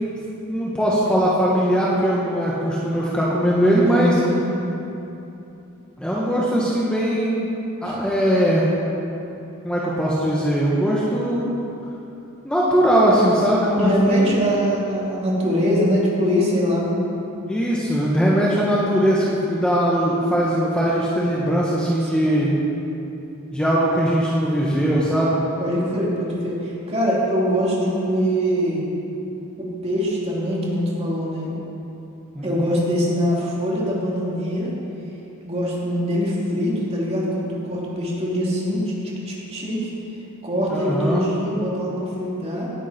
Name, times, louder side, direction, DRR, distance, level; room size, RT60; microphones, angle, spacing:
voice 1, 0.5-4.2 6.0-7.5 7.8-8.6 9.6-11.5 12.4-14.3 17.5-22.5 23.5-25.4 32.3-32.7 40.7-41.3, equal, 5° left, -6 dB, 1.5 m, -20 dB
voice 2, 3.8-4.6 7.8-8.0 13.8-16.9 22.0-22.1 22.6-22.8 25.6-28.8 29.6-31.5 32.4-34.7 35.4-38.9 39.3-39.9 40.4-42.7, equal, 30° right, -5 dB, 3.1 m, -23 dB
18.0 x 11.0 x 4.5 m, 2.9 s
head